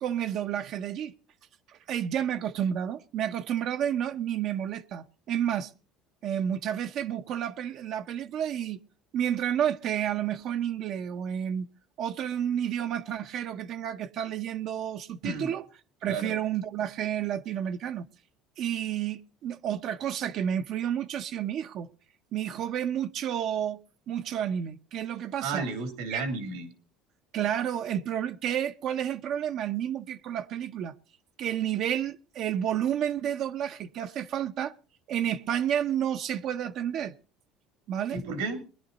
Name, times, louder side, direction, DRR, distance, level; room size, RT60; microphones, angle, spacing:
voice 1, 0.0-1.1 1.7-5.7 6.2-8.8 9.1-11.7 12.0-15.6 16.0-18.1 18.6-21.9 22.3-23.8 24.1-25.7 26.1-26.2 27.3-30.9 31.4-34.7 35.1-37.1 37.9-38.2, right 9 dB, 60° right, 0.7 m, -30 dB
voice 2, 25.4-26.7 38.1-38.6, right 3 dB, 90° right, 2.9 m, -32 dB
21.5 x 10.5 x 4.0 m
supercardioid pair, 100°, 0 cm